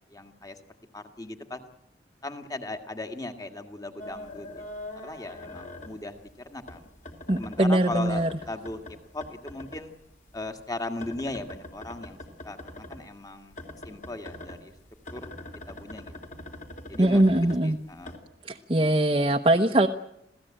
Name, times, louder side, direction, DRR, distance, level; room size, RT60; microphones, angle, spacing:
voice 1, 0.1-0.6 0.9-1.7 2.2-4.6 5.0-6.9 7.4-9.9 10.3-12.2 12.4-13.6 13.8-14.7 15.1-15.3 15.7-16.1 16.9-18.1, left 2 dB, 20° left, 6 dB, 1.9 m, -38 dB
sound 1, 4.0-6.3 6.6-9.8 10.1-13.0 13.5-18.2, left 1 dB, 45° left, 3.5 m, -42 dB
voice 2, 7.3-8.3 17.0-17.8 18.4-19.9, right 1 dB, 30° right, 3 dB, 1.0 m, -22 dB
27.0 x 16.5 x 8.9 m, 0.79 s
head